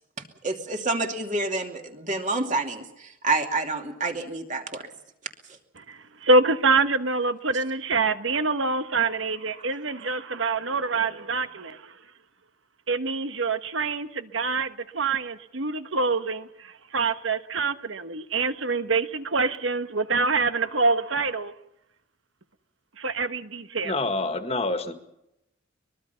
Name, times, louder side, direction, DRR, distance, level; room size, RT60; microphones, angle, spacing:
voice 1, 0.4-4.8, right 3 dB, 35° right, 2.6 m, -28 dB
voice 2, 5.8-11.9 12.9-21.5 23.0-23.9, right 3 dB, 70° right, 1.3 m, -25 dB
voice 3, 23.8-24.9, left 2 dB, 30° left, 1.8 m, -27 dB
23.5 x 22.0 x 5.8 m
head